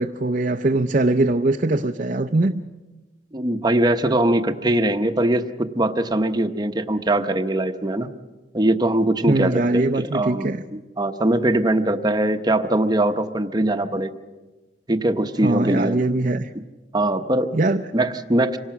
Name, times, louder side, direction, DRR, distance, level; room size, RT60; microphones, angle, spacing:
voice 1, 0.0-2.6 9.3-10.6 15.4-16.5 17.5-17.8, right 2 dB, 45° right, 0.6 m, -21 dB
voice 2, 3.3-8.1 8.5-10.5 11.0-14.1 14.9-16.0 16.9-17.5 17.9-18.6, right 1 dB, 25° right, 0.9 m, -21 dB
26.0 x 18.0 x 5.9 m
head